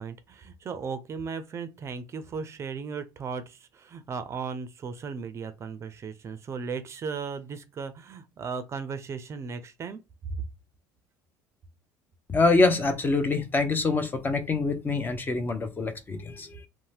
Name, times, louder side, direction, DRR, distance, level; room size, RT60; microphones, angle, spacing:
voice 1, 0.0-10.0, right 5 dB, 35° right, 0.4 m, -36 dB
voice 2, 12.3-16.6, left 3 dB, 25° left, 0.5 m, -25 dB
2.7 x 2.1 x 3.2 m
cardioid pair, 110°, 8 cm